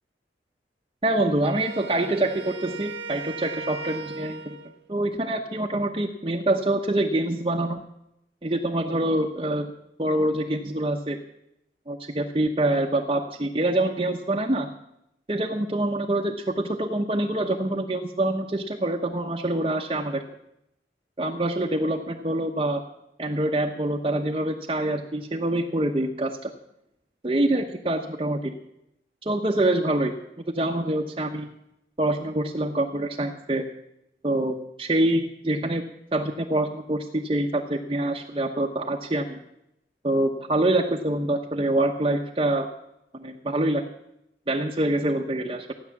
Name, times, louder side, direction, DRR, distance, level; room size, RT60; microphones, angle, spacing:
voice 1, 1.0-4.6 4.9-7.8 8.4-9.7 10.0-11.2 11.9-14.7 15.3-20.2 21.2-22.8 23.2-26.5 27.2-28.5 29.2-30.1 30.5-31.5 32.0-33.6 34.2-35.8 36.1-39.4 40.0-42.7 43.1-43.8 44.5-45.7, right 1 dB, 30° right, 0 dB, 0.9 m, -25 dB
Wind instrument woodwind instrument, 1.4-4.8, right 3 dB, 80° right, 1.3 m, -37 dB
15.5 x 9.7 x 7.1 m, 0.81 s
head